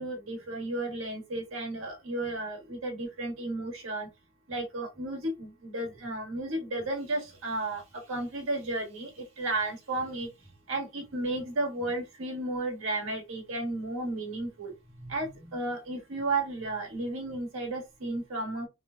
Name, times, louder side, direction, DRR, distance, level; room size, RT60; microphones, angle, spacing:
voice 1, 0.0-4.1 4.5-10.3 10.7-18.7, right 2 dB, 85° right, 1.5 m, -33 dB
3.5 x 2.2 x 2.5 m
head